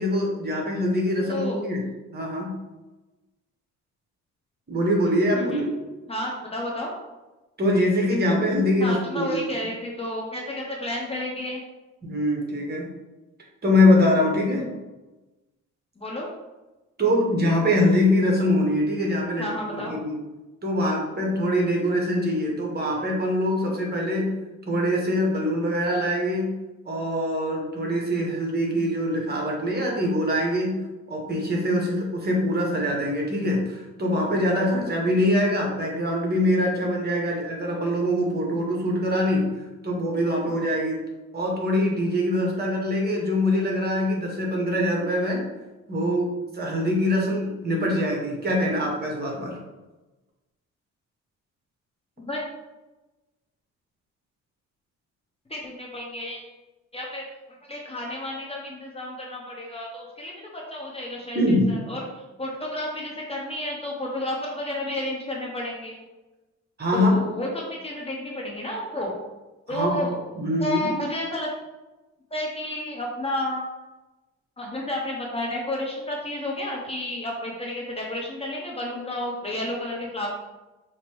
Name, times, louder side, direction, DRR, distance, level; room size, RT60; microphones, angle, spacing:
voice 1, 0.0-1.8 2.1-2.6 4.7-5.7 7.6-9.4 12.0-12.9 13.6-14.7 17.0-20.2 20.6-24.3 24.7-26.5 26.8-30.8 31.1-39.5 39.8-41.0 41.3-45.4 45.9-49.6 61.3-61.7 66.8-67.2 69.7-70.0 70.3-70.9, left 1 dB, 30° right, -1 dB, 1.3 m, -23 dB
voice 2, 1.2-1.7 5.3-5.6 6.1-6.9 8.8-11.6 16.0-16.3 19.4-20.0 52.2-52.4 55.5-56.5 56.9-57.2 57.7-66.0 66.9-69.1 69.7-71.5 72.3-73.8 74.6-80.3, left 1 dB, 20° left, -2 dB, 0.9 m, -31 dB
5.1 x 2.9 x 3.1 m, 1.1 s
cardioid pair, 90°, 30 cm